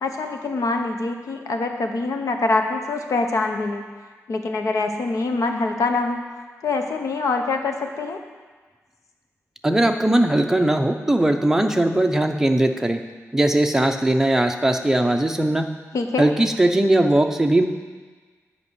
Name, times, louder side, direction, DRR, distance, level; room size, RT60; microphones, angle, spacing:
voice 1, 0.0-3.8 4.3-6.3 6.6-8.2 15.9-16.3, left 3 dB, 75° left, 4 dB, 1.0 m, -24 dB
voice 2, 9.6-13.0 13.3-15.7 16.2-17.6, right 1 dB, 10° right, 4 dB, 0.7 m, -19 dB
10.5 x 5.3 x 8.2 m, 1.4 s
wide cardioid pair, 145°, 6 cm